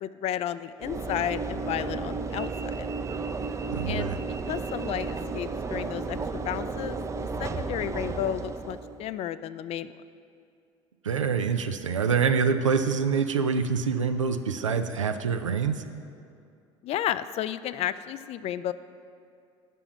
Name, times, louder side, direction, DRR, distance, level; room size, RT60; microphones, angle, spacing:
voice 1, 0.0-2.9 3.9-4.1 4.5-6.2 6.5-7.0 7.4-9.9 16.8-18.7, left 11 dB, 40° left, 14 dB, 0.3 m, -32 dB
Train / Engine / Alarm, 0.8-9.1, right 4 dB, 20° right, 0.5 m, -33 dB
voice 2, 3.7-4.2 11.0-15.8, right 6 dB, 90° right, 9 dB, 0.4 m, -26 dB
6.9 x 5.8 x 7.1 m, 2.5 s
figure-of-eight pair, 65°, 16 cm